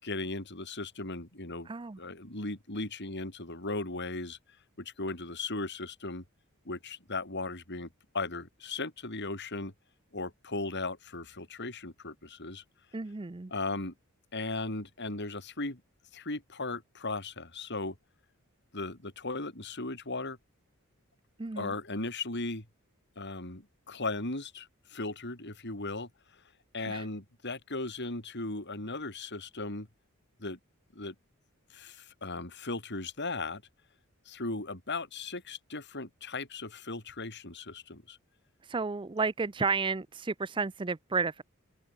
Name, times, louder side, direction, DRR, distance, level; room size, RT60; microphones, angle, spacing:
voice 1, 0.0-1.7 2.0-4.4 4.8-6.2 6.7-7.9 8.1-9.7 10.1-12.6 13.5-13.9 14.3-15.8 16.1-18.0 18.7-20.4 21.6-22.7 23.2-26.4 26.7-29.9 30.4-30.6 30.9-31.2 31.7-33.6 34.3-38.2, left 3 dB, 55° left, 5.2 m, -37 dB
voice 2, 1.7-2.0 12.9-13.5 21.4-21.7 26.9-27.0 38.6-41.4, right 4 dB, 25° right, 0.5 m, -32 dB
open air
head